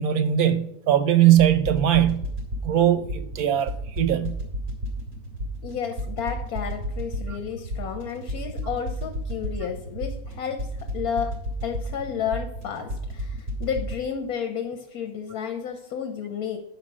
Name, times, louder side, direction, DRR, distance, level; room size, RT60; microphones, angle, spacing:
voice 1, 0.0-2.3 2.6-4.4 7.3-7.4, right 11 dB, 85° right, 1.3 m, -20 dB
sound 1, 1.6-14.0, equal, 45° right, 2.6 m, -32 dB
voice 2, 5.6-10.7 10.9-11.3 11.6-16.6, left 7 dB, 85° left, 1.4 m, -31 dB
10.5 x 5.2 x 6.1 m
omnidirectional pair, 1.5 m